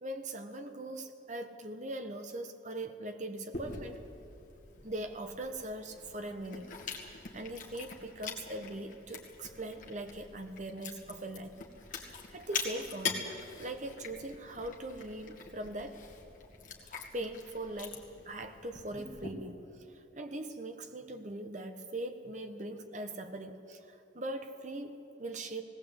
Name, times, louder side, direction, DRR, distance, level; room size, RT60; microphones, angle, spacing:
voice 1, 0.0-4.0 4.8-11.6 11.9-13.3 13.6-16.0 16.9-25.6, right 1 dB, 40° right, 7 dB, 1.3 m, -41 dB
Chewing mastication, 3.5-19.3, left 5 dB, 45° left, 2.2 m, -44 dB
18.5 x 18.0 x 8.4 m, 2.8 s
head